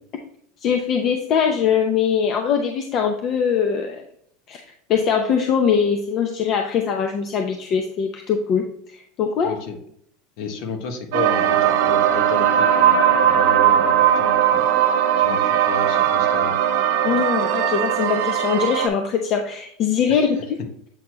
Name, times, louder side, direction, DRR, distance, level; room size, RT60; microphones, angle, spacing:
voice 1, 0.6-4.0 4.5-4.6 4.9-8.7 8.9-9.6 17.0-20.4, left 7 dB, 40° left, 4 dB, 0.7 m, -21 dB
voice 2, 9.4-9.8 10.4-16.5 20.1-20.3, left 5 dB, 60° left, 5 dB, 1.4 m, -32 dB
sound 1, 11.1-18.9, right 9 dB, 75° right, 0.8 m, -18 dB
8.1 x 4.3 x 3.1 m, 0.67 s
supercardioid pair, 140°, 0 cm